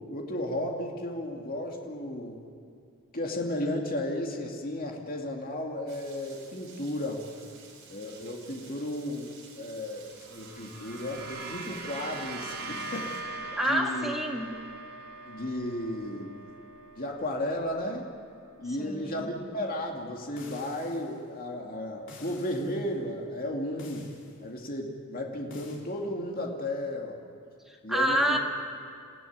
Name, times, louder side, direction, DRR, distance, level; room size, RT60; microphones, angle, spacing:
voice 1, 0.1-2.4 3.1-7.2 7.9-13.1 13.7-14.1 15.3-16.4 17.0-18.1 18.6-24.1 24.4-27.2 27.8-28.4, left 1 dB, 40° left, 0 dB, 2.4 m, -34 dB
Rain, 5.9-13.2, right 5 dB, 60° right, 5.0 m, -53 dB
sound 1, 10.1-18.6, right 2 dB, 85° right, 2.8 m, -42 dB
voice 2, 13.6-14.5 18.8-19.3 27.7-28.4, equal, ahead, 0 dB, 1.9 m, -28 dB
sound 2, 20.4-21.2 22.1-22.8 23.8-24.4 25.5-25.8, left 1 dB, 55° left, 4.2 m, -47 dB
28.0 x 15.5 x 9.5 m, 2.4 s
head